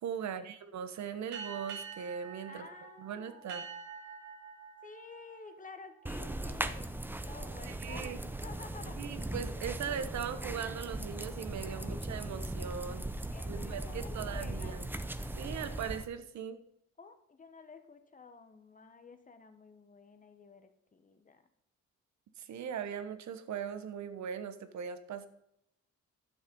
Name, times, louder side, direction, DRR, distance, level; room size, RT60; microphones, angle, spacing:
voice 1, 0.0-2.7 3.0-3.6 7.6-8.2 9.0-13.0 13.5-14.9 15.3-16.6 22.4-25.3, right 8 dB, 65° right, 11 dB, 1.1 m, -39 dB
sound 1, 1.3-6.4, right 6 dB, 85° right, 2.8 m, -47 dB
voice 2, 2.5-3.6 4.8-6.9 7.2-9.1 11.6-12.1 13.3-14.9 17.0-21.4, left 4 dB, 25° left, 8 dB, 1.3 m, -52 dB
sound 2, 6.1-16.1, right 1 dB, 5° right, 0.6 m, -39 dB
11.0 x 6.4 x 5.4 m, 0.81 s
cardioid pair, 90°, 30 cm